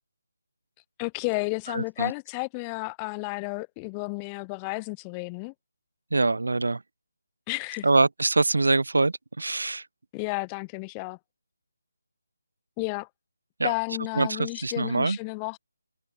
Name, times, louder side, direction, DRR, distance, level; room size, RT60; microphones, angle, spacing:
voice 1, 1.0-5.5 7.5-7.9 10.1-11.2 12.8-13.1 13.6-15.6, left 34 dB, 15° left, 2.3 m, -32 dB
voice 2, 1.7-2.1 6.1-6.8 7.8-9.8 13.6-13.7 14.2-15.2, right 3 dB, 80° right, 3.0 m, -24 dB
figure-of-eight pair, 170°, 0 cm